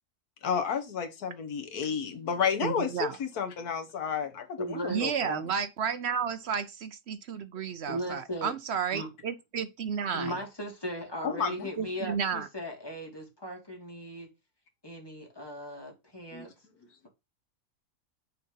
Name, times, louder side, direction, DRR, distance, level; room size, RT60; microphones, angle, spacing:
voice 1, 0.4-5.4 11.2-11.7 16.3-16.5, left 6 dB, 80° left, 1.7 m, -31 dB
voice 2, 2.6-3.2 4.9-10.4 11.8-12.5, right 7 dB, 60° right, 0.7 m, -32 dB
voice 3, 4.6-5.0 7.9-8.5 8.9-9.1 10.1-14.3 14.8-16.5, equal, 15° left, 2.4 m, -37 dB
6.5 x 4.2 x 5.4 m
omnidirectional pair, 1.6 m